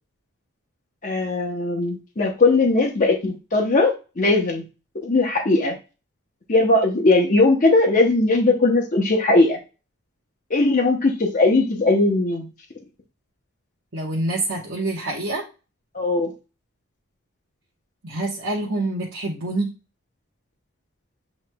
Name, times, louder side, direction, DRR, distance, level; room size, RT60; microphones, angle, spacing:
voice 1, 1.0-4.6 5.0-5.7 6.5-9.6 10.5-12.5 15.9-16.3, left 2 dB, 35° left, 0 dB, 0.7 m, -19 dB
voice 2, 13.9-15.4 18.0-19.7, right 2 dB, 60° right, -4 dB, 1.0 m, -26 dB
7.6 x 3.0 x 2.2 m, 0.31 s
head